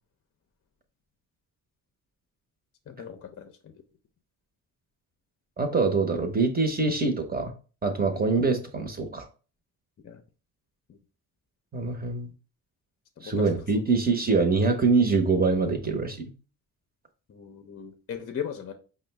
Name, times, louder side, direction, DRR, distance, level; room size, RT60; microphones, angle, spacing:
voice 1, 2.9-3.7 10.0-10.2 10.9-11.0 13.2-13.4 17.3-18.7, left 8 dB, 40° left, 7 dB, 0.6 m, -38 dB
voice 2, 5.6-7.5 7.8-9.3 11.7-12.3 13.2-16.3, right 4 dB, 25° right, 4 dB, 0.8 m, -24 dB
5.2 x 2.1 x 3.2 m, 0.36 s
cardioid pair, 75°, 37 cm